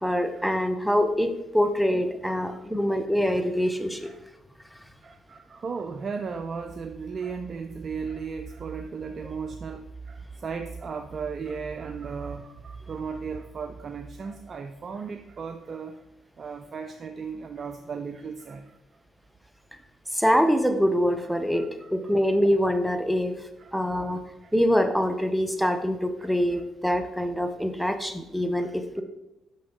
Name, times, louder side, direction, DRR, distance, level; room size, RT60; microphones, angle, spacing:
voice 1, 0.0-4.1 20.1-23.4 23.7-24.2 24.5-29.0, equal, ahead, 7 dB, 0.8 m, -24 dB
voice 2, 2.3-2.8 4.0-4.2 5.0-16.0 16.4-19.0 21.5-22.1 23.6-23.7 24.4-24.5 26.2-26.6 28.6-29.0, right 5 dB, 45° right, 7 dB, 0.4 m, -36 dB
6.2 x 6.1 x 3.6 m, 0.97 s
hypercardioid pair, 45°, 0 cm